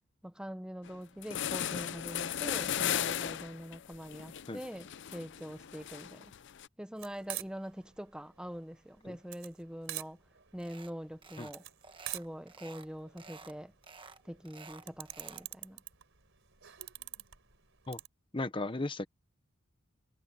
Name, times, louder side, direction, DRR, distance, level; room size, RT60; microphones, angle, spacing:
voice 1, 0.2-6.3 6.8-10.2 10.5-11.6 12.1-13.7 14.2-15.8, equal, 5° right, 0.8 m, -44 dB
sound 1, 0.9-1.0 1.2-6.7, left 10 dB, 60° left, 0.5 m, -36 dB
sound 2, 7.0-18.1, right 14 dB, 65° right, 4.5 m, -46 dB
sound 3, 10.6-10.9 11.2-11.6 11.8-12.9 13.2-13.5 13.8-15.5, right 4 dB, 25° right, 1.3 m, -52 dB
voice 2, 18.3-19.1, left 2 dB, 25° left, 0.9 m, -35 dB
head